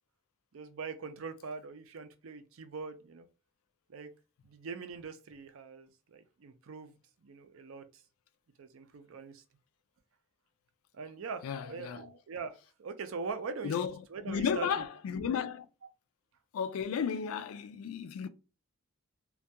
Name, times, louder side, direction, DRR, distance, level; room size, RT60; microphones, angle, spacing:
voice 1, 0.5-3.3 3.9-4.1 4.4-8.0 8.6-9.4 10.9-13.7 14.1-14.7 15.1-15.3, right 4 dB, 70° right, 0.4 m, -42 dB
voice 2, 11.4-12.1 13.6-14.0 14.2-15.7 16.5-18.3, left 7 dB, 80° left, 0.3 m, -33 dB
2.3 x 2.2 x 2.7 m
head